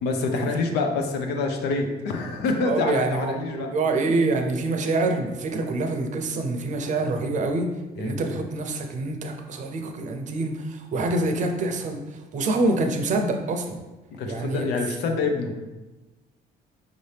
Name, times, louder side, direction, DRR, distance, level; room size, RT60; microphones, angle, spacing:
voice 1, 0.0-3.7 8.0-8.2 14.1-15.5, left 3 dB, 75° left, 4 dB, 0.7 m, -26 dB
voice 2, 2.6-7.7 8.0-13.8 14.2-14.7, right 2 dB, 45° right, 5 dB, 0.6 m, -26 dB
5.2 x 2.8 x 3.3 m, 1.1 s
cardioid pair, 110°, 17 cm